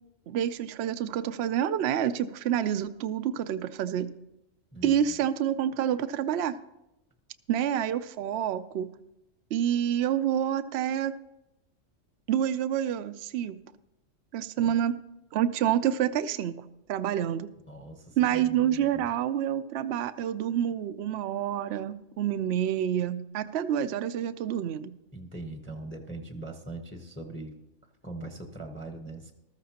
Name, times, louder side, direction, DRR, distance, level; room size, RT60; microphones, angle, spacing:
voice 1, 0.3-4.1 4.8-6.5 7.5-8.9 9.5-11.1 12.3-13.6 14.3-14.9 15.3-16.6 16.9-17.5 18.2-24.9, right 10 dB, 65° right, 11 dB, 0.7 m, -28 dB
voice 2, 4.7-5.2 14.6-14.8 17.7-19.1 25.1-27.5 28.0-29.3, right 2 dB, 10° left, 4 dB, 0.9 m, -41 dB
14.0 x 13.5 x 2.9 m, 0.90 s
omnidirectional pair, 1.3 m